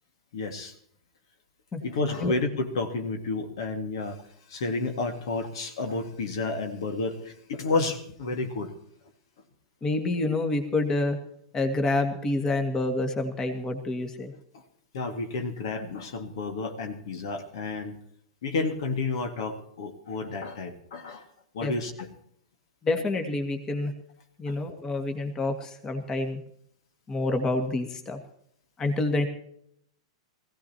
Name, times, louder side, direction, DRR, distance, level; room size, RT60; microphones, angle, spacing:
voice 1, 0.3-0.7 1.8-4.2 4.5-8.7 14.5-14.6 14.9-18.0 18.4-21.3 21.5-22.1 24.5-24.6, left 3 dB, 60° left, 5 dB, 1.9 m, -31 dB
voice 2, 9.8-11.2 11.5-14.3 21.6-21.7 22.8-23.9 24.4-26.4 27.1-28.2 28.8-29.3, left 2 dB, 20° left, 6 dB, 1.9 m, -27 dB
20.0 x 15.5 x 2.9 m, 0.69 s
figure-of-eight pair, 100°, 3 cm